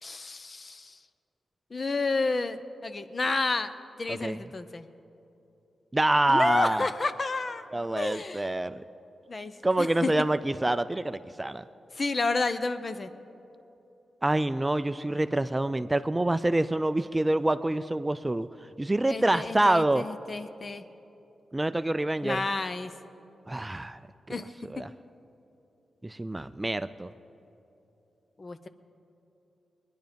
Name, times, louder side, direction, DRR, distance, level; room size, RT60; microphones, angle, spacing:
voice 1, 0.0-1.0 1.7-3.7 4.0-4.8 6.3-7.6 7.9-8.5 9.3-9.5 9.8-10.1 11.9-13.1 19.1-20.9 22.2-22.9 24.3-24.5 28.4-28.7, left 3 dB, 40° left, 11 dB, 0.7 m, -30 dB
voice 2, 4.1-4.4 5.9-6.9 7.7-8.8 9.6-11.6 14.2-18.5 18.8-20.1 21.5-22.4 23.5-24.0 24.7-24.9 26.0-27.1, right 1 dB, 20° right, 12 dB, 0.4 m, -26 dB
20.5 x 10.5 x 5.2 m, 2.9 s
cardioid pair, 65°, 0 cm